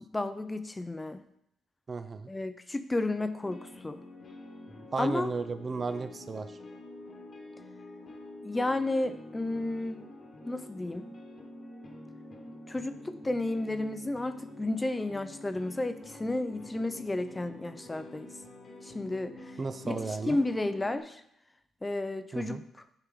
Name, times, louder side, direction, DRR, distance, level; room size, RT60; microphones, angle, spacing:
voice 1, 0.1-1.2 2.3-4.0 5.0-5.3 8.4-10.0 10.5-11.1 12.7-18.3 18.8-19.3 19.8-21.2 21.8-22.6, left 2 dB, 15° left, 11 dB, 0.5 m, -32 dB
voice 2, 1.9-2.3 4.9-6.6 19.6-20.4 22.3-22.6, right 4 dB, 35° right, 10 dB, 0.4 m, -34 dB
sound 1, 3.4-21.0, left 1 dB, 45° left, 1.3 m, -47 dB
9.9 x 4.7 x 3.7 m, 0.77 s
cardioid pair, 90°, 0 cm